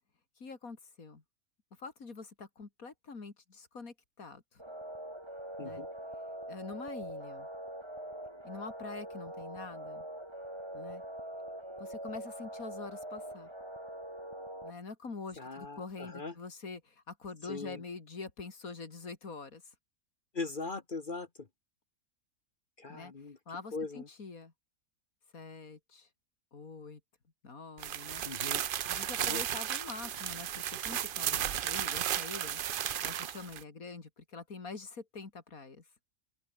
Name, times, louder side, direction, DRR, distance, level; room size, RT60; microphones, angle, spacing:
voice 1, 0.4-1.2 1.8-4.6 5.6-5.8 6.5-7.5 8.4-10.1 10.7-11.0 11.8-13.5 14.6-19.7 22.9-23.1 23.5-24.5 25.3-26.1 26.5-27.0 27.4-28.2 28.9-32.6 33.0-35.9, left 4 dB, 80° left, 3.2 m, -45 dB
sound 1, 4.6-14.7, right 1 dB, 20° right, 5.1 m, -43 dB
voice 2, 15.4-16.3 17.5-17.8 20.3-21.5 22.8-23.4 23.7-24.1 28.2-28.6 29.2-29.4, left 3 dB, 40° left, 1.4 m, -40 dB
sound 2, 27.8-33.6, right 10 dB, 60° right, 0.6 m, -34 dB
open air
omnidirectional pair, 1.5 m